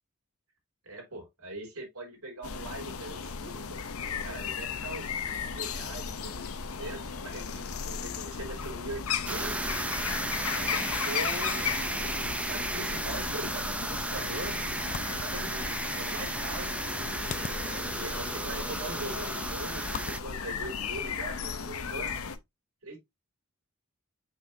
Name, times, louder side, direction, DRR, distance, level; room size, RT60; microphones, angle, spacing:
voice 1, 0.8-3.8 4.2-9.8 10.5-14.6 15.2-16.8 17.6-22.1 22.8-23.0, right 2 dB, 80° right, 3.8 m, -41 dB
sound 1, 2.4-22.4, left 6 dB, 70° left, 0.8 m, -36 dB
sound 2, 9.2-20.2, right 2 dB, 5° right, 0.6 m, -34 dB
sound 3, 14.7-21.4, left 6 dB, 35° left, 0.3 m, -46 dB
6.3 x 5.8 x 2.7 m
head